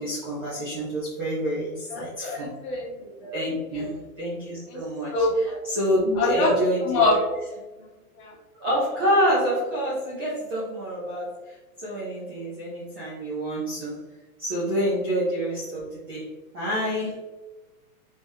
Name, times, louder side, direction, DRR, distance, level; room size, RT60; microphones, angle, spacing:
voice 1, 0.0-2.5 3.3-3.9 4.2-7.3 8.6-11.3 11.8-14.0 14.4-17.2, equal, 15° right, -8 dB, 0.4 m, -27 dB
voice 2, 1.9-3.3 3.7-3.9 4.7-4.8 5.1-5.6 6.2-6.5 6.8-7.2 8.2-8.3, left 2 dB, 35° left, -3 dB, 1.4 m, -25 dB
4.0 x 3.8 x 3.0 m, 1.2 s
supercardioid pair, 160°, 45 cm